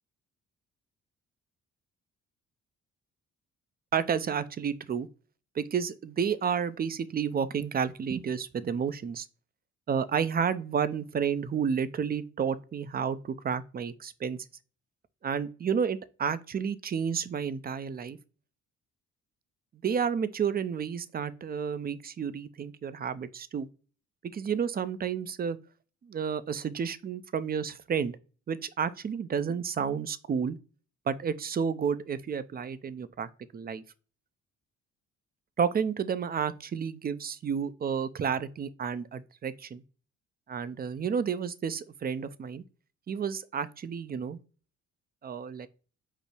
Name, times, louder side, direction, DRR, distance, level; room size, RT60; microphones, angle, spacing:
voice 1, 3.9-5.1 5.6-9.3 9.9-14.4 15.2-18.2 19.8-23.7 24.3-25.6 26.0-28.2 28.5-30.6 31.1-33.8 35.6-39.8 40.5-42.6 43.1-44.4 45.2-45.7, right 7 dB, 30° right, 0.4 m, -31 dB
5.2 x 2.0 x 4.7 m
cardioid pair, 90°, 30 cm